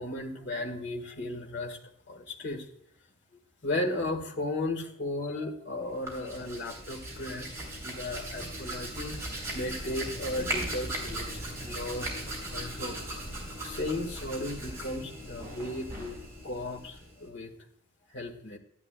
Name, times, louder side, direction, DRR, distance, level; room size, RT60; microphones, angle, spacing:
voice 1, 0.0-1.8 2.1-2.6 3.6-13.0 13.6-16.2 16.4-17.5 18.1-18.6, left 1 dB, 60° left, 3 dB, 1.6 m, -35 dB
Hands, 5.9-17.3, right 1 dB, 15° right, 3.6 m, -38 dB
12.0 x 11.0 x 2.2 m, 0.72 s
head